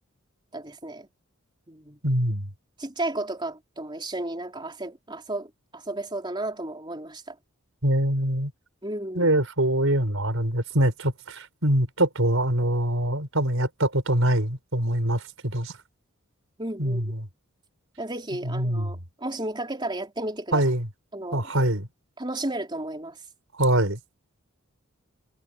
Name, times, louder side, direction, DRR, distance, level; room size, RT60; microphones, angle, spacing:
voice 1, 0.5-1.1 1.7-2.0 2.8-7.4 8.8-9.4 16.6-17.1 18.0-20.6 21.1-21.5 22.2-23.2, right 1 dB, 20° right, 4.0 m, -33 dB
voice 2, 2.0-2.5 7.8-8.5 9.2-15.7 16.8-17.2 18.4-18.9 20.5-20.9 21.3-21.9 23.6-24.0, right 1 dB, 65° right, 5.9 m, -24 dB
head